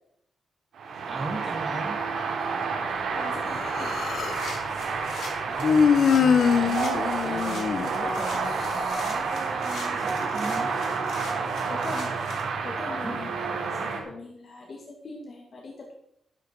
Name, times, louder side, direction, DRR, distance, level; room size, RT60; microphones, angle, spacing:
sound 1, 0.7-14.0, right 5 dB, 90° right, 3.4 m, -29 dB
voice 1, 1.1-2.4 5.5-6.9 7.2-10.8 13.0-13.2, right 2 dB, 25° right, 0 dB, 2.0 m, -38 dB
voice 2, 3.1-4.2 11.7-12.2 12.6-15.9, left 3 dB, 50° left, -1 dB, 2.4 m, -41 dB
Human voice, 3.5-4.5 5.6-8.4, left 6 dB, 65° left, 0.8 m, -23 dB
sound 2, 4.1-12.4, left 3 dB, 85° left, 3.7 m, -42 dB
12.0 x 11.5 x 4.6 m, 0.74 s
wide cardioid pair, 125°, 0 cm